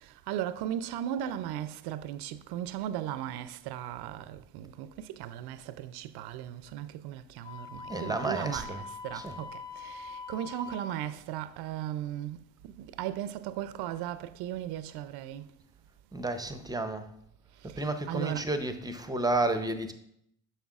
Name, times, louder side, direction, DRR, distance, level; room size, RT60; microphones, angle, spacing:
voice 1, 0.3-15.4 17.7-18.5, right 11 dB, 75° right, 0.5 m, -37 dB
Wind instrument woodwind instrument, 7.4-11.0, left 5 dB, 80° left, 2.4 m, -43 dB
voice 2, 7.9-9.4 16.1-17.1 17.6-19.9, right 2 dB, 10° right, 0.6 m, -32 dB
7.2 x 5.6 x 2.4 m
supercardioid pair, 65°, 39 cm